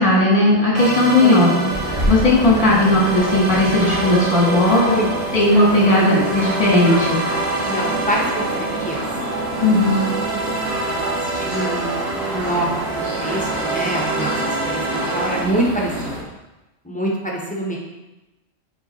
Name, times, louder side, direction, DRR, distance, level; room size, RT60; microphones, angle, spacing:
voice 1, 0.0-4.9 5.3-7.2 9.6-10.1, left 1 dB, 45° left, -4 dB, 1.7 m, -16 dB
sound 1, 0.7-15.4, right 3 dB, 30° right, 0.8 m, -26 dB
sound 2, 1.7-16.2, equal, 55° right, 2.1 m, -30 dB
voice 2, 4.7-5.1 5.9-6.1 7.7-8.2 8.6-9.0 10.3-10.4 10.8-14.3 14.6-14.8 15.1-15.9 16.8-17.8, right 1 dB, 5° left, -4 dB, 0.9 m, -25 dB
5.2 x 4.5 x 4.1 m, 1.0 s
omnidirectional pair, 1.3 m